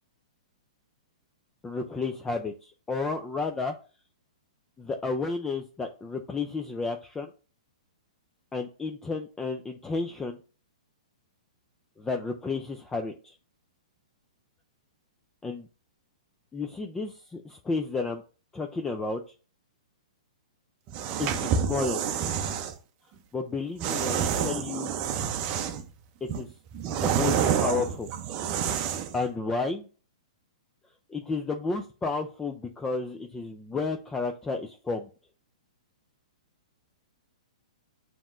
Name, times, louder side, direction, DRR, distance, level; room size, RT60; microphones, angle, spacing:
voice 1, 1.6-3.7 4.8-7.3 8.5-10.4 12.0-13.3 15.4-15.7 16.5-18.2 18.5-19.2 21.2-22.1 23.3-24.9 26.3-26.5 26.9-28.1 29.1-29.9 31.1-35.1, left 4 dB, 10° left, 5 dB, 0.4 m, -32 dB
sound 1, 20.9-22.7 23.8-25.9 26.3-29.2, right 8 dB, 35° right, 0.6 m, -28 dB
7.0 x 3.0 x 2.5 m, 0.36 s
hypercardioid pair, 125°, 4 cm